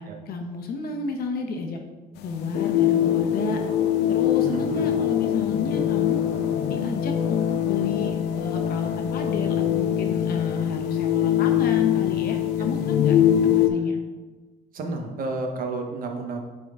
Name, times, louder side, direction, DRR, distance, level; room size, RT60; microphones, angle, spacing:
voice 1, 0.0-1.8 2.2-3.6 4.1-6.2 6.7-13.2 13.4-14.0, left 5 dB, 65° left, 3 dB, 1.1 m, -31 dB
sound 1, 2.2-13.7, left 10 dB, 90° left, 0.6 m, -23 dB
voice 2, 4.4-4.9 12.6-12.7 13.7-13.9 14.7-16.4, right 3 dB, 55° right, 3 dB, 1.2 m, -31 dB
8.9 x 4.1 x 3.7 m, 1.3 s
cardioid pair, 110°, 17 cm